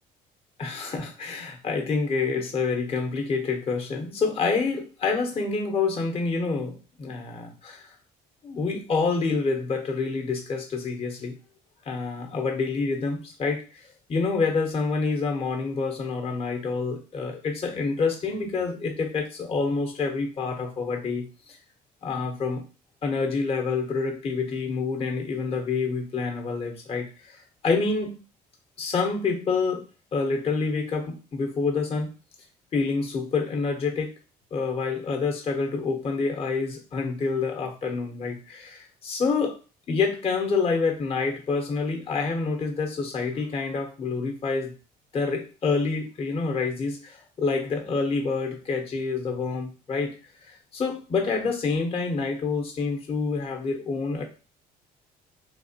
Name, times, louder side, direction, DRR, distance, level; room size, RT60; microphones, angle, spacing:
voice 1, 0.6-8.0 8.4-11.4 11.8-21.6 22.0-22.6 23.0-28.2 28.8-29.8 30.1-32.1 32.7-34.1 34.5-39.6 39.9-44.7 45.1-50.1 50.5-54.2, left 4 dB, 35° left, 3 dB, 0.8 m, -27 dB
3.3 x 2.9 x 2.8 m, 0.34 s
cardioid pair, 110°, 17 cm